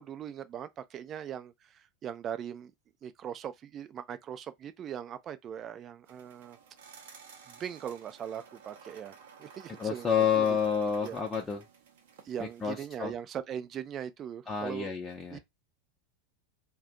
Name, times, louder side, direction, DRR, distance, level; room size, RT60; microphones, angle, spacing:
voice 1, 0.0-2.7 3.0-6.6 7.5-10.6 11.0-11.2 12.2-14.9 15.3-15.4, right 9 dB, 35° right, 0.4 m, -40 dB
sound 1, 6.0-12.7, right 6 dB, 65° right, 0.7 m, -54 dB
voice 2, 9.8-11.6 12.4-13.1 14.5-15.4, left 7 dB, 20° left, 0.6 m, -29 dB
2.5 x 2.2 x 3.7 m
figure-of-eight pair, 85°, 0 cm